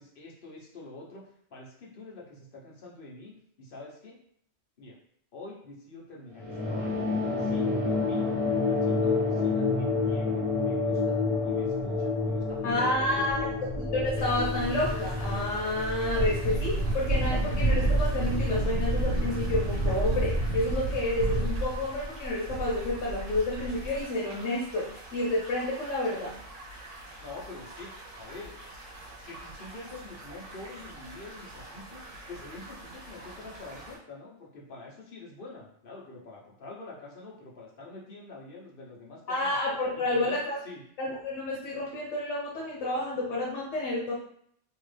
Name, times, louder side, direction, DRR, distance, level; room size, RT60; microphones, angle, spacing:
voice 1, 0.0-4.2 4.8-5.0 5.3-8.4 8.6-13.7 27.2-27.9 28.2-28.5 29.1-39.6 39.9-40.8, left 2 dB, 50° left, -3 dB, 1.0 m, -46 dB
sound 1, 6.4-21.3, left 4 dB, 20° right, 1.2 m, -30 dB
sound 2, 11.8-11.9 12.6-12.7 13.0-24.0, right 2 dB, 30° left, 1.1 m, -30 dB
voice 2, 12.6-13.5 13.8-26.3 39.3-40.6 41.0-44.1, left 1 dB, 85° left, -5 dB, 1.1 m, -30 dB
sound 3, 14.1-34.0, right 1 dB, 75° right, 1.3 m, -46 dB
3.1 x 2.5 x 3.2 m, 0.65 s
omnidirectional pair, 1.2 m